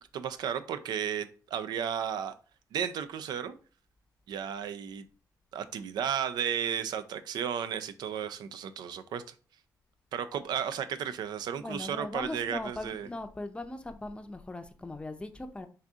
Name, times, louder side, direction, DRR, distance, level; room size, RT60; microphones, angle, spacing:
voice 1, 0.1-2.3 2.7-3.5 4.3-5.1 5.5-9.2 10.1-13.1, right 8 dB, 80° right, 0.4 m, -34 dB
voice 2, 11.6-15.7, left 2 dB, 15° left, 0.5 m, -39 dB
4.0 x 2.5 x 3.5 m
cardioid pair, 75°, 7 cm